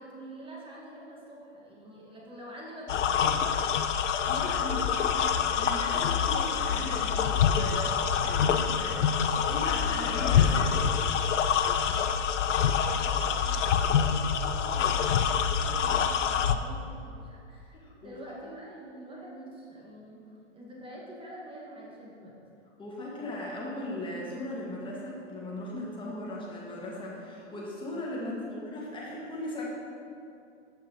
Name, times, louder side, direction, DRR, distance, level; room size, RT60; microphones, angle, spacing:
voice 1, 0.0-3.6 4.4-4.9 11.8-12.2 12.5-22.4 28.2-28.5, right 1 dB, 15° right, -3 dB, 1.8 m, -46 dB
sound 1, 2.9-16.6, left 7 dB, 70° left, 0.6 m, -26 dB
voice 2, 4.3-4.9 5.5-11.0 17.8-18.3 22.8-29.6, left 1 dB, 15° left, -4 dB, 1.8 m, -38 dB
14.0 x 5.8 x 3.0 m, 2.5 s
figure-of-eight pair, 105°, 37 cm